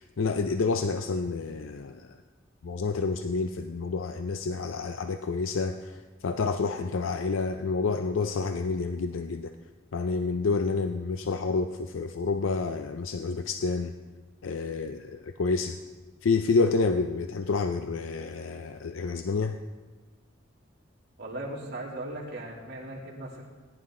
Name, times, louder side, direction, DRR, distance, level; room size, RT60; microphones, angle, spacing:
voice 1, 0.2-2.2 2.6-9.5 9.9-13.9 14.4-15.8 16.2-19.6, left 4 dB, 85° left, 8 dB, 0.5 m, -29 dB
voice 2, 21.2-23.5, right 1 dB, 60° right, -3 dB, 2.8 m, -38 dB
18.0 x 11.0 x 3.7 m, 1.3 s
head